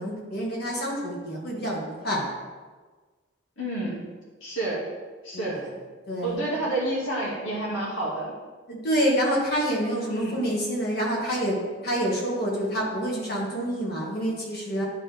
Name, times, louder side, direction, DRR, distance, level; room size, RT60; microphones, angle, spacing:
voice 1, 0.0-2.2 5.3-5.6 6.1-6.4 8.7-11.6 11.8-14.8, equal, 50° left, -3 dB, 1.8 m, -27 dB
voice 2, 3.6-4.0 4.4-4.8 5.2-5.6 6.2-8.3 10.1-10.4, right 1 dB, 85° left, -5 dB, 2.2 m, -29 dB
10.5 x 4.5 x 3.5 m, 1.4 s
head